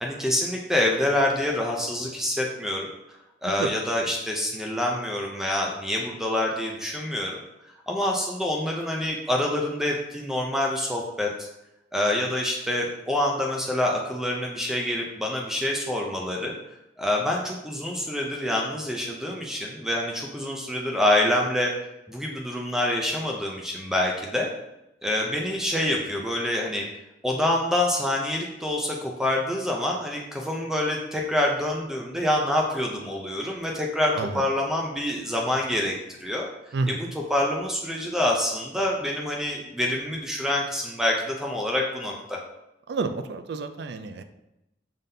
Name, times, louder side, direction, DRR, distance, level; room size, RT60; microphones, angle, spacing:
voice 1, 0.0-2.9 3.4-7.4 7.9-11.5 11.9-16.5 17.0-21.7 22.1-24.5 25.0-26.8 27.2-36.5 36.9-42.4, left 1 dB, 5° right, -1 dB, 0.5 m, -26 dB
voice 2, 42.9-44.2, right 3 dB, 65° right, 9 dB, 0.4 m, -29 dB
5.2 x 3.7 x 2.7 m, 0.89 s
head